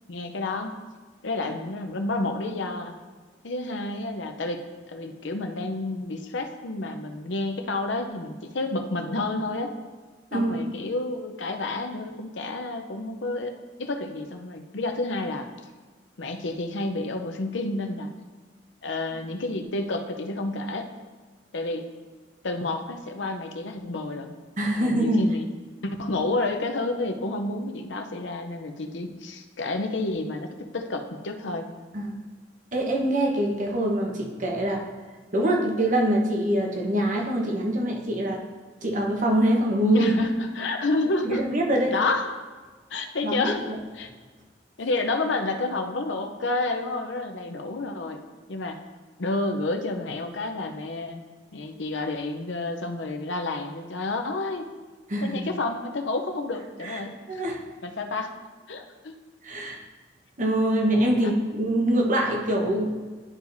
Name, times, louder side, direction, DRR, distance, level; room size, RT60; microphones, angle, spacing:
voice 1, 0.1-0.7 1.2-2.9 3.4-4.6 4.9-9.7 10.3-15.5 16.2-18.1 18.8-20.9 21.5-21.9 22.4-24.3 24.8-25.5 25.8-31.6 39.9-41.4 41.9-42.3 42.9-43.6 43.9-44.1 44.8-48.2 48.5-48.8 49.2-51.2 51.5-54.7 55.2-57.4 57.8-58.3 58.7-59.1, left 2 dB, 80° left, 5 dB, 0.7 m, -30 dB
voice 2, 10.3-10.7 24.6-25.2 31.9-32.1 32.7-34.8 35.3-38.4 38.8-40.1 41.2-41.9 43.2-43.8 55.1-55.3 56.8-57.0 57.3-57.6 59.4-59.8 60.4-63.0, right 1 dB, 45° right, 0 dB, 1.1 m, -24 dB
11.0 x 4.9 x 2.7 m, 1.4 s
head